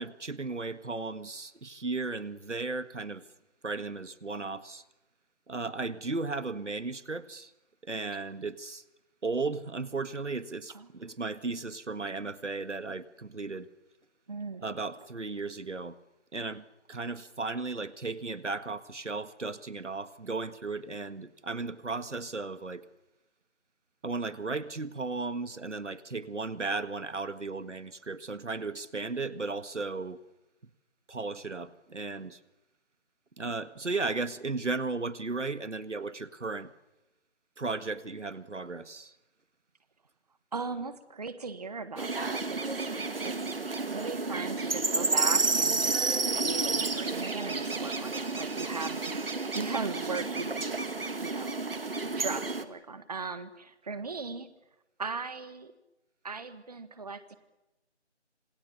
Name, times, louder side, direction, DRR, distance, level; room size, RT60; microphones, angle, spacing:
voice 1, 0.0-3.2 3.6-4.8 5.5-7.5 7.8-8.8 9.2-13.7 14.6-16.0 16.3-22.9 24.0-30.2 31.1-32.4 33.4-36.7 37.6-39.1, right 3 dB, 80° right, 13 dB, 1.9 m, -35 dB
voice 2, 14.3-14.6 40.5-43.3 43.9-46.0 46.4-50.8 51.2-51.5 52.2-54.5 55.0-55.7 56.2-57.4, right 4 dB, 35° right, 12 dB, 1.5 m, -38 dB
sound 1, 42.0-52.6, right 3 dB, 55° right, 2.2 m, -31 dB
Speech, 42.7-49.4, right 1 dB, 5° right, 6.2 m, -54 dB
27.0 x 26.5 x 7.0 m, 0.99 s
figure-of-eight pair, 165°, 35 cm